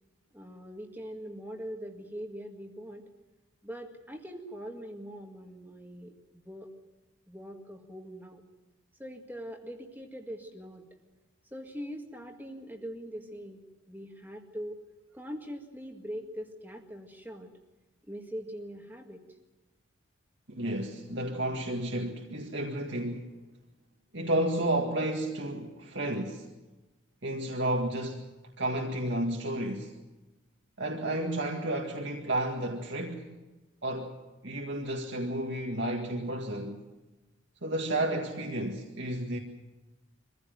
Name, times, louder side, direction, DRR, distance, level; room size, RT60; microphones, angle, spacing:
voice 1, 0.3-3.0 3.6-6.7 7.3-8.4 9.0-10.9 11.5-13.6 13.9-14.8 15.1-17.5 18.1-19.2, equal, 10° right, 1.9 m, -42 dB
voice 2, 20.5-23.3 24.1-26.5 27.2-28.3 28.6-29.9 30.8-33.4 33.8-34.2 34.4-36.9 37.6-39.4, right 1 dB, 60° right, 2.0 m, -32 dB
24.0 x 16.0 x 9.2 m
head